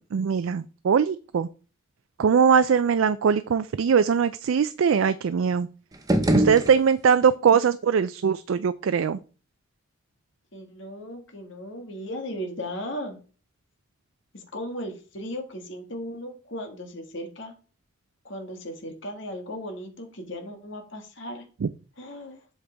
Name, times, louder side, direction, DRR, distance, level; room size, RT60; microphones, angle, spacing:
voice 1, 0.0-1.5 2.2-5.7 6.3-9.2 21.6-21.7, right 6 dB, 75° right, 13 dB, 0.4 m, -21 dB
sound 1, 5.9-7.3, right 1 dB, 20° right, 0.9 m, -24 dB
voice 2, 10.5-13.2 14.3-17.5 18.2-21.4 22.0-22.4, equal, 60° left, 3 dB, 1.8 m, -36 dB
7.9 x 6.5 x 3.4 m, 0.36 s
head